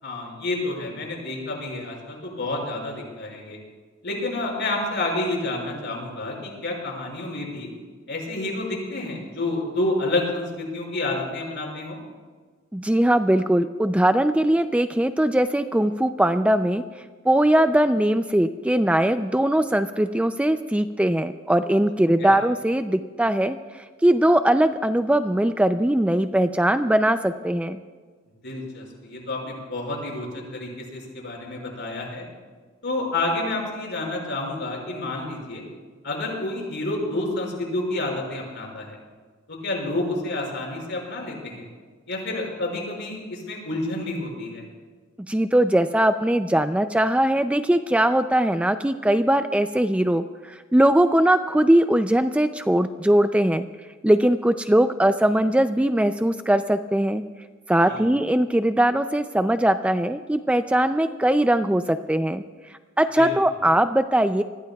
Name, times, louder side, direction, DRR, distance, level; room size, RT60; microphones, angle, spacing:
voice 1, 0.0-3.6 4.0-7.7 8.1-12.0 22.2-22.4 28.4-32.3 32.8-35.6 36.0-39.0 39.5-41.7 42.1-44.6 57.9-58.0 63.2-63.3, left 2 dB, 60° left, -1 dB, 5.9 m, -29 dB
voice 2, 12.7-16.8 17.2-27.8 45.3-53.7 54.0-57.2 57.7-62.4 63.0-64.4, right 1 dB, 5° right, 9 dB, 0.4 m, -20 dB
27.0 x 20.5 x 2.3 m, 1.5 s
head